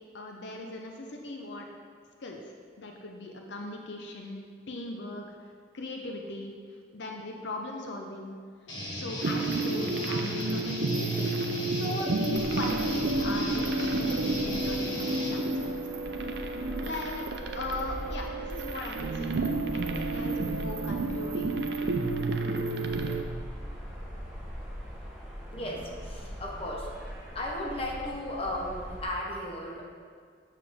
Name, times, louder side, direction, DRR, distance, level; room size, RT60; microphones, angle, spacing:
voice 1, 0.1-1.7 2.2-2.4 2.8-5.3 5.7-8.3 8.9-11.3 11.7-15.8 16.8-19.4 19.7-21.6, left 2 dB, 70° left, 2 dB, 0.6 m, -39 dB
Guitar, 8.7-15.4, equal, 85° left, 1.7 m, -37 dB
sound 1, 9.2-23.2, right 2 dB, 60° right, 0.5 m, -31 dB
sound 2, 12.3-29.1, equal, 5° right, 1.2 m, -42 dB
voice 2, 25.5-26.9 27.3-29.9, left 1 dB, 30° left, -1 dB, 0.8 m, -35 dB
6.9 x 6.7 x 3.5 m, 2.1 s
head